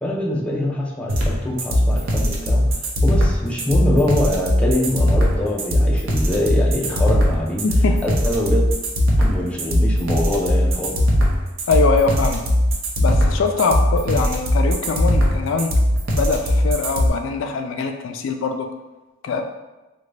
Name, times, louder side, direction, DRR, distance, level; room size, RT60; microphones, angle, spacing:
voice 1, 0.0-2.6 3.0-7.7 8.0-8.6 9.2-11.0, left 1 dB, 5° left, -3 dB, 0.4 m, -24 dB
sound 1, 1.1-17.1, equal, 75° right, 0.6 m, -19 dB
voice 2, 7.6-8.0 11.7-12.5 13.0-15.7 16.1-18.7 19.2-19.4, left 4 dB, 75° left, 5 dB, 0.3 m, -22 dB
3.7 x 2.2 x 3.2 m, 1.1 s
head